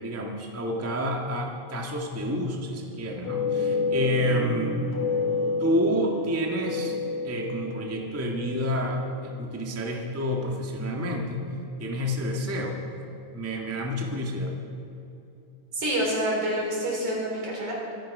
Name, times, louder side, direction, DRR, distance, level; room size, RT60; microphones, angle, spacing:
voice 1, 0.0-4.8 5.6-6.9 7.2-11.4 11.8-12.8 13.3-14.6, equal, 15° right, 0 dB, 0.5 m, -29 dB
sound 1, 3.2-9.4, left 3 dB, 75° left, 3.7 m, -29 dB
voice 2, 15.7-17.7, right 1 dB, 75° right, -3 dB, 5.5 m, -27 dB
24.0 x 9.4 x 5.4 m, 2.9 s
omnidirectional pair, 3.3 m